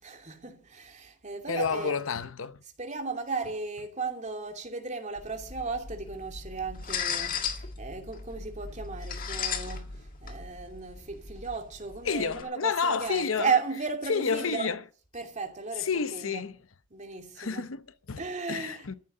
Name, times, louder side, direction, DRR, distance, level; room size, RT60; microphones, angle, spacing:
voice 1, 0.0-2.0 2.8-14.7 15.1-16.4 16.9-17.7 18.2-18.9, right 4 dB, 35° right, 2.8 m, -35 dB
voice 2, 1.5-2.6 12.0-13.5 14.1-14.8 15.8-16.6 17.4-18.9, left 5 dB, 80° left, 0.8 m, -30 dB
sound 1, 5.2-12.4, left 6 dB, 45° left, 1.8 m, -37 dB
14.5 x 7.4 x 9.8 m
head